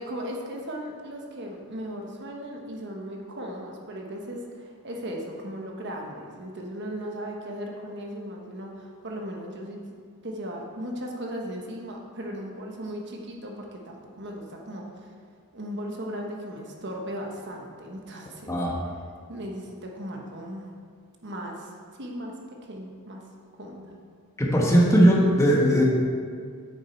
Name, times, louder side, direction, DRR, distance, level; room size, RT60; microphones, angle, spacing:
voice 1, 0.0-9.8 10.2-15.1 15.5-18.6 19.3-20.6 21.2-22.3 22.6-23.2 23.5-23.9, equal, 50° right, 0 dB, 1.2 m, -37 dB
voice 2, 24.4-25.8, equal, 15° left, -3 dB, 1.2 m, -19 dB
9.2 x 7.5 x 4.4 m, 2.1 s
head